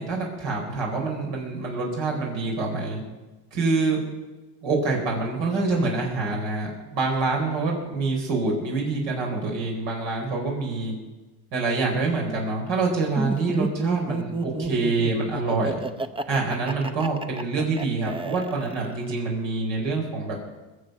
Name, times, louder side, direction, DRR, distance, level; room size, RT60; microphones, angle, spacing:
voice 1, 0.0-3.0 3.5-4.0 4.6-10.9 11.5-15.8 16.3-20.4, right 3 dB, 75° right, -1 dB, 4.6 m, -26 dB
Laughter, 13.2-19.1, right 3 dB, 10° right, 0.6 m, -31 dB
21.5 x 7.2 x 6.7 m, 1.2 s
supercardioid pair, 100°, 45 cm